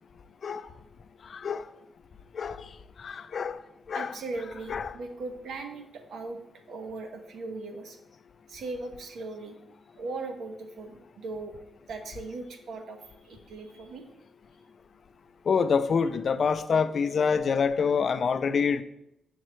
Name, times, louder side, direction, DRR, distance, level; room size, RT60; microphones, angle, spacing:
voice 1, 1.3-1.6 2.4-2.6 3.0-3.6 3.9-4.1 4.7-4.9 15.5-18.8, left 6 dB, 45° left, 12 dB, 0.4 m, -26 dB
voice 2, 3.9-6.4 6.7-8.0 8.5-9.6 10.0-11.5 11.9-14.0, right 3 dB, 75° right, 5 dB, 0.9 m, -38 dB
7.6 x 6.4 x 3.1 m, 0.83 s
wide cardioid pair, 165°, 0 cm